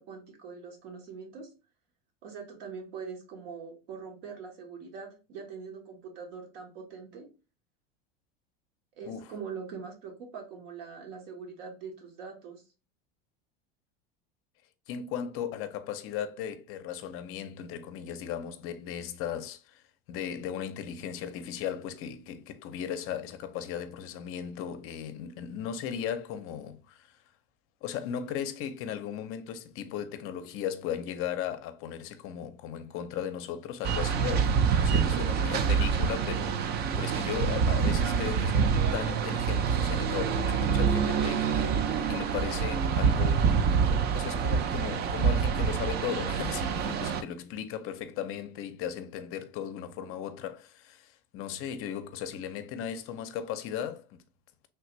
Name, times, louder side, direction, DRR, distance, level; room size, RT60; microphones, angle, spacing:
voice 1, 0.0-1.5 2.2-7.3 8.9-12.6 35.1-35.3, right 5 dB, 75° right, 1.2 m, -42 dB
voice 2, 14.9-19.8 20.1-27.2 27.8-43.5 43.9-54.2, left 9 dB, 50° left, 0.5 m, -37 dB
sound 1, 33.8-47.2, right 6 dB, 35° right, 0.4 m, -26 dB
3.3 x 2.5 x 3.0 m
supercardioid pair, 105°, 29 cm